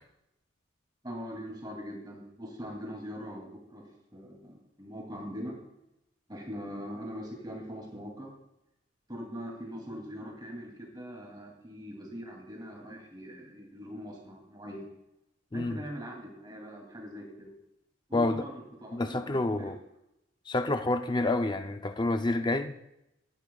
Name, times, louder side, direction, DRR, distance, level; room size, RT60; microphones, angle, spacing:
voice 1, 1.0-5.6 6.3-8.4 9.1-14.9 15.5-17.5 18.1-19.7, equal, 20° right, 0 dB, 2.7 m, -42 dB
voice 2, 18.1-18.4 18.9-19.8 20.5-22.8, left 2 dB, 25° left, 7 dB, 0.5 m, -28 dB
19.5 x 13.5 x 2.3 m, 0.86 s
head